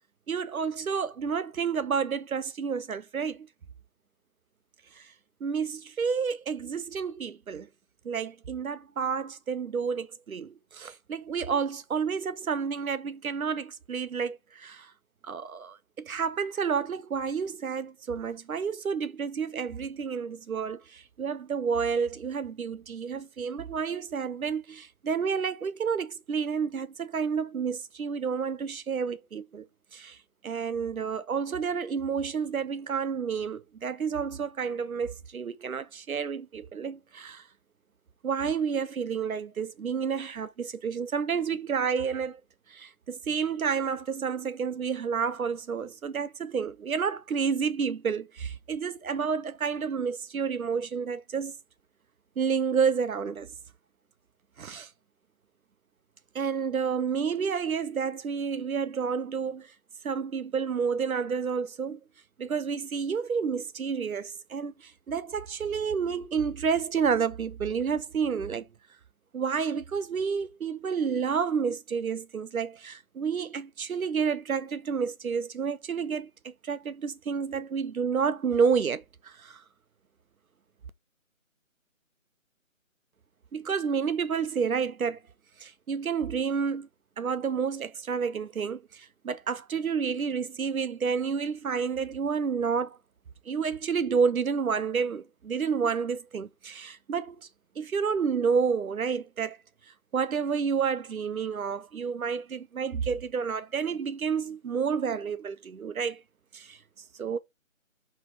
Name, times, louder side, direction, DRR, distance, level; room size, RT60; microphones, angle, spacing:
voice 1, 0.3-3.5 5.0-5.1 5.4-7.7 8.0-14.9 15.2-29.7 29.9-30.2 30.4-37.4 38.2-42.4 42.7-51.6 52.4-53.5 54.6-54.9 56.3-59.7 60.0-62.0 62.4-68.7 69.3-79.6 83.5-85.2 85.6-86.9 87.2-93.0 93.5-97.4 97.8-99.6 100.1-106.2 106.5-106.8 107.2-107.4, right 6 dB, 85° right, 0.8 m, -30 dB
5.9 x 3.3 x 4.8 m
figure-of-eight pair, 170°, 41 cm